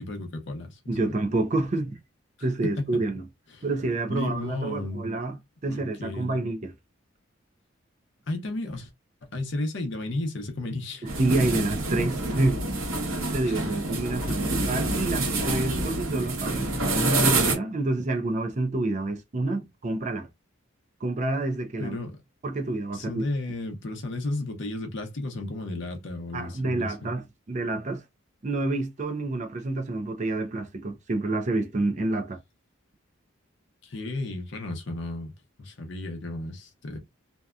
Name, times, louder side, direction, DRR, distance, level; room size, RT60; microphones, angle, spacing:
voice 1, 0.0-0.8 2.6-2.9 3.5-3.6 4.1-5.1 5.7-6.4 8.3-8.9 9.2-11.1 11.4-11.7 13.4-13.7 14.3-14.5 21.8-22.2 22.9-27.1 33.8-35.3 35.6-37.0, left 2 dB, 60° left, 0.6 m, -33 dB
voice 2, 0.9-2.0 2.4-3.2 3.6-5.3 5.6-6.7 11.0-12.6 13.3-20.3 21.0-22.0 22.4-23.2 26.3-28.0 28.4-32.4, right 2 dB, 35° right, 0.4 m, -28 dB
sound 1, 11.1-17.6, right 2 dB, 80° right, 1.0 m, -27 dB
2.7 x 2.2 x 2.3 m
head